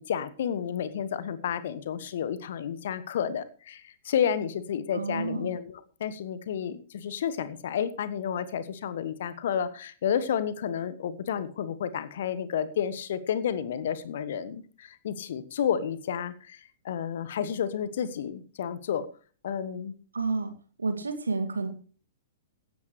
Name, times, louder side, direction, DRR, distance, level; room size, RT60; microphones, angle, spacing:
voice 1, 0.0-16.6 16.8-19.1 19.4-19.9, left 8 dB, 55° left, 14 dB, 1.4 m, -31 dB
voice 2, 4.9-5.5 20.1-20.5 20.8-21.7, right 4 dB, 75° right, 7 dB, 2.4 m, -30 dB
16.0 x 13.0 x 3.3 m, 0.40 s
figure-of-eight pair, 110°, 0 cm